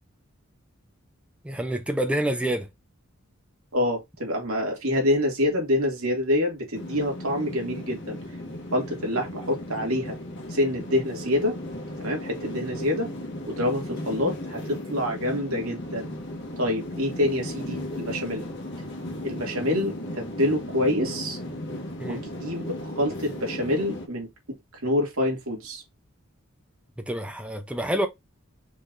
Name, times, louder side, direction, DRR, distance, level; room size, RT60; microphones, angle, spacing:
voice 1, 1.4-2.7 22.0-22.2 27.1-28.1, right 1 dB, 5° right, 0.6 m, -27 dB
voice 2, 3.7-8.2 8.7-10.2 10.5-11.6 12.0-13.1 13.5-16.1 16.6-18.4 19.2-21.4 22.1-24.3 24.8-25.8, left 1 dB, 75° right, 2.4 m, -26 dB
sound 1, 6.7-24.1, left 1 dB, 60° left, 1.4 m, -36 dB
5.1 x 3.9 x 2.6 m
head